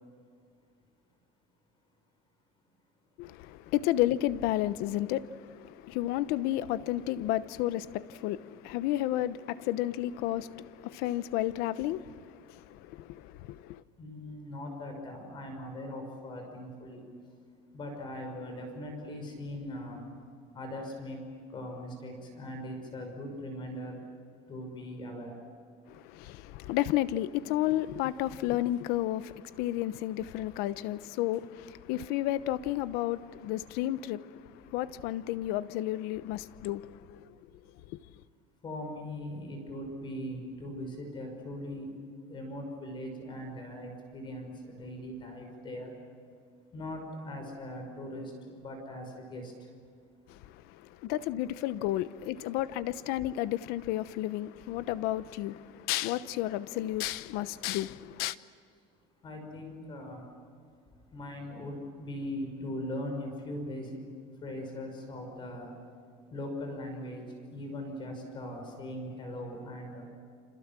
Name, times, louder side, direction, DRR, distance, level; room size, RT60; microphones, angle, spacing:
voice 1, 3.2-13.8 25.9-37.3 37.9-38.0 50.3-58.4, left 14 dB, 70° left, 1.0 m, -32 dB
voice 2, 14.0-17.0 17.7-20.0 20.5-21.2 21.5-23.9 24.5-25.3 38.6-41.9 42.3-44.5 44.8-45.9 46.7-49.4 59.2-60.2 61.1-63.9 64.4-65.7 66.3-67.2 67.5-70.1, left 1 dB, 30° left, 6.0 m, -40 dB
28.5 x 26.5 x 7.6 m
cardioid pair, 160°, 16 cm